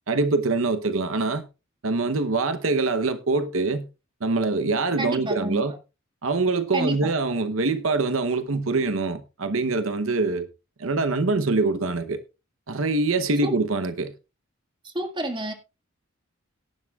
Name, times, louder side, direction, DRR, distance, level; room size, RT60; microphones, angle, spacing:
voice 1, 0.1-1.4 1.8-3.9 4.2-5.8 6.2-10.5 10.8-12.2 12.7-14.1, right 3 dB, 80° right, 0.9 m, -24 dB
voice 2, 5.0-5.6 6.7-7.1 13.4-13.5 14.8-15.5, right 1 dB, 25° right, 1.9 m, -29 dB
17.0 x 11.0 x 2.4 m
head